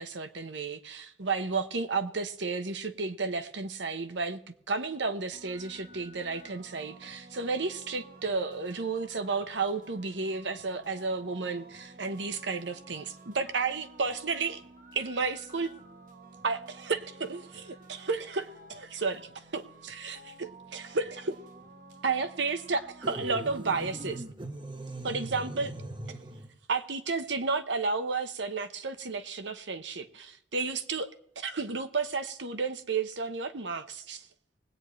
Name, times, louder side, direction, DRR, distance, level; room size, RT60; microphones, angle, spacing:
voice 1, 0.0-4.4 4.7-14.6 14.9-15.7 16.4-21.4 22.0-24.2 25.0-25.7 26.7-31.1 31.4-34.3, right 4 dB, 75° right, 1.0 m, -32 dB
sound 1, 5.3-24.2, right 2 dB, 45° right, 1.1 m, -52 dB
sound 2, 23.0-26.5, right 1 dB, 25° right, 0.9 m, -40 dB
21.0 x 9.2 x 3.2 m
head